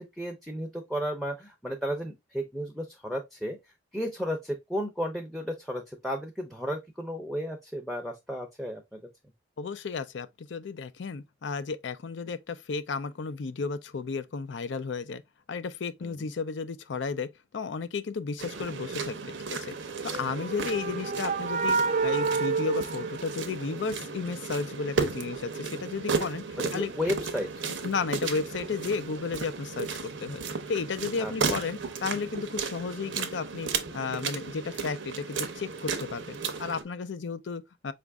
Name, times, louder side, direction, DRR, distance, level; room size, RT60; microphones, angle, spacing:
voice 1, 0.0-3.6 3.9-9.0 16.0-16.3 26.6-27.6 31.2-31.6, equal, ahead, 0.6 m, -33 dB
voice 2, 9.6-15.2 15.5-19.2 19.5-19.7 20.0-26.9 27.8-30.4 30.7-37.9, left 4 dB, 70° left, 0.5 m, -33 dB
sound 1, 18.4-36.8, right 5 dB, 80° right, 0.8 m, -34 dB
sound 2, 20.0-23.9, right 4 dB, 40° right, 0.5 m, -29 dB
5.0 x 2.5 x 3.4 m
head